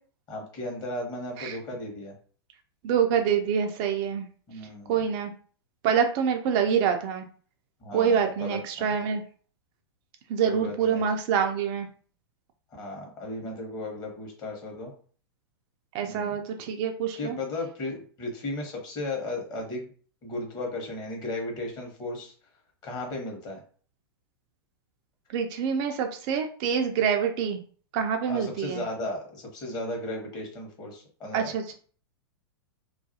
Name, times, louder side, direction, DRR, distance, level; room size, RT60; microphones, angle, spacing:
voice 1, 0.3-2.2 4.5-5.0 7.8-9.0 10.4-11.0 12.7-14.9 16.0-16.4 17.2-19.9 20.2-22.3 22.8-23.6 28.3-31.7, left 2 dB, 30° left, 1 dB, 0.9 m, -35 dB
voice 2, 2.8-4.2 4.9-5.3 5.8-7.2 7.9-9.2 10.3-11.9 15.9-17.4 25.3-27.6 27.9-28.8 31.3-31.7, right 7 dB, 40° right, 4 dB, 0.3 m, -26 dB
2.3 x 2.2 x 2.6 m, 0.43 s
figure-of-eight pair, 105°, 13 cm